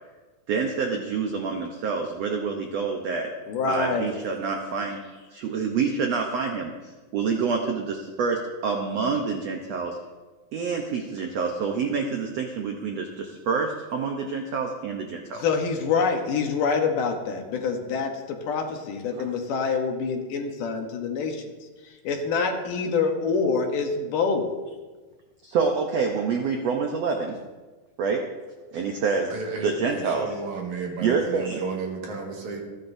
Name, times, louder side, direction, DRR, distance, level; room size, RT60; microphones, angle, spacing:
voice 1, 0.5-3.3 3.6-6.7 7.1-10.0 10.5-15.4 19.1-19.2 25.4-27.4 28.0-28.3 28.7-29.3 29.6-30.3 31.0-31.6, right 5 dB, 80° right, 2 dB, 1.4 m, -27 dB
voice 2, 3.5-4.1 15.3-21.5 22.0-24.5, left 5 dB, 70° left, 3 dB, 2.5 m, -26 dB
voice 3, 29.3-32.6, right 4 dB, 55° right, 0 dB, 3.0 m, -33 dB
29.0 x 9.8 x 2.7 m, 1.3 s
omnidirectional pair, 4.3 m